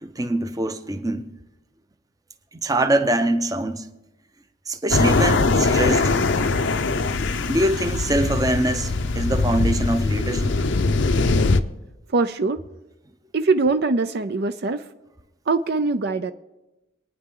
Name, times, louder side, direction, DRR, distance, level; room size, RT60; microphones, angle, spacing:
voice 1, 0.0-1.3 2.5-3.9 4.7-6.1 7.5-10.6, right 1 dB, 15° right, 0.7 m, -24 dB
sound 1, 4.9-11.6, left 3 dB, 55° left, 0.6 m, -21 dB
voice 2, 12.1-12.6 13.3-14.8 15.5-16.3, right 3 dB, 50° right, 0.5 m, -22 dB
26.0 x 9.6 x 3.8 m
head